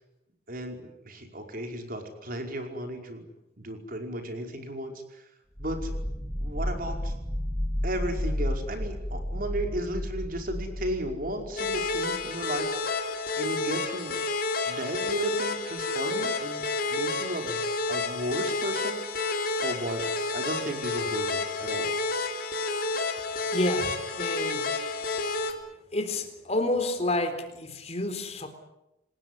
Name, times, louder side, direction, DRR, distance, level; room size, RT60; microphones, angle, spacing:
voice 1, 0.5-3.3 3.6-5.2 5.6-5.9 6.4-7.1 7.8-13.0 13.4-14.2 14.6-16.6 16.9-19.0 19.6-21.9, right 1 dB, 55° right, 4 dB, 5.2 m, -34 dB
sound 1, 5.6-12.3, equal, ahead, 3.3 m, -32 dB
sound 2, 11.6-25.5, left 3 dB, 55° left, 3.6 m, -30 dB
voice 2, 23.5-24.7 25.9-28.5, left 2 dB, 35° left, 8 dB, 3.9 m, -29 dB
28.0 x 20.0 x 9.9 m, 0.92 s
head